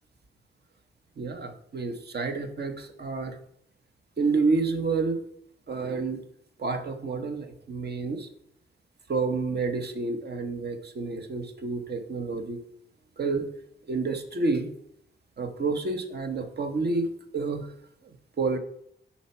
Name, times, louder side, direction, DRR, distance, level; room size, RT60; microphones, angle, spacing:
voice 1, 1.2-3.4 4.2-5.2 5.7-6.2 6.6-8.3 9.1-12.6 13.2-13.5 13.9-14.7 15.4-17.7 18.4-18.6, right 4 dB, 55° right, 7 dB, 1.1 m, -29 dB
10.5 x 4.3 x 5.5 m, 0.71 s
wide cardioid pair, 160°, 20 cm